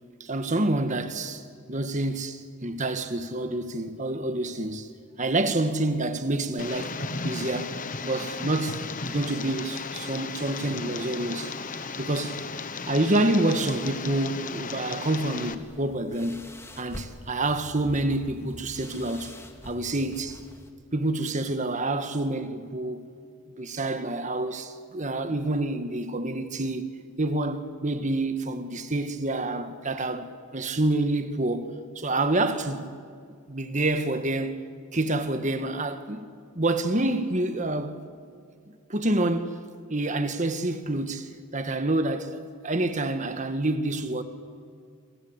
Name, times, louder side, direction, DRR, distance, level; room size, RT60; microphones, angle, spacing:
voice 1, 0.2-7.0 7.2-8.8 9.0-11.6 12.0-12.4 12.9-16.5 16.8-19.3 19.6-20.4 20.9-23.1 23.6-26.8 27.2-32.9 33.5-34.5 34.9-36.3 36.6-38.0 38.9-39.6 39.9-44.2, right 2 dB, 35° right, 1.7 m, -28 dB
Tick, 6.6-15.5, left 4 dB, 40° left, 1.3 m, -35 dB
sound 1, 15.4-20.7, left 1 dB, 10° left, 2.2 m, -45 dB
27.0 x 26.5 x 8.2 m
head